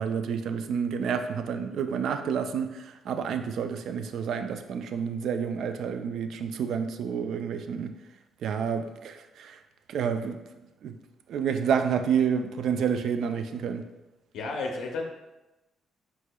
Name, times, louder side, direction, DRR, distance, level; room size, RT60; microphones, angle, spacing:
voice 1, 0.0-7.9 8.4-9.6 9.9-10.4 10.8-10.9 11.3-13.8, right 7 dB, 70° right, 8 dB, 0.3 m, -29 dB
voice 2, 14.3-15.0, left 3 dB, 85° left, 1 dB, 0.5 m, -32 dB
4.6 x 4.0 x 2.2 m, 1.0 s
cardioid pair, 90°, 0 cm